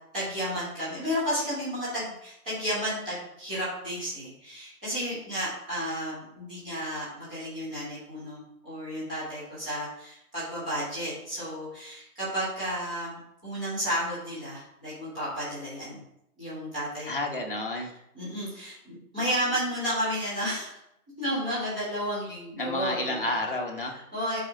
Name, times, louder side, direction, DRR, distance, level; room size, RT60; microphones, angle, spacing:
voice 1, 0.1-16.0 16.4-17.1 17.8-17.9 18.1-20.7 21.2-23.4 23.9-24.4, equal, 5° right, -13 dB, 1.8 m, -32 dB
voice 2, 17.1-17.9 22.5-23.9, left 2 dB, 35° left, 0 dB, 1.4 m, -30 dB
11.0 x 4.9 x 3.9 m, 0.79 s
figure-of-eight pair, 175°, 46 cm